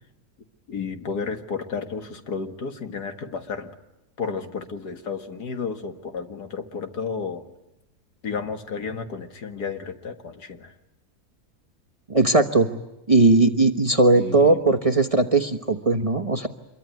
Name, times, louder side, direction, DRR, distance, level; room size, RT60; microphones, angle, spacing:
voice 1, 0.7-3.7 4.2-7.4 8.2-10.7 14.2-14.6, left 5 dB, 75° left, 7 dB, 2.3 m, -32 dB
voice 2, 12.1-12.7 13.1-16.5, right 2 dB, 25° right, 7 dB, 1.1 m, -18 dB
26.5 x 23.0 x 9.4 m, 0.92 s
omnidirectional pair, 1.7 m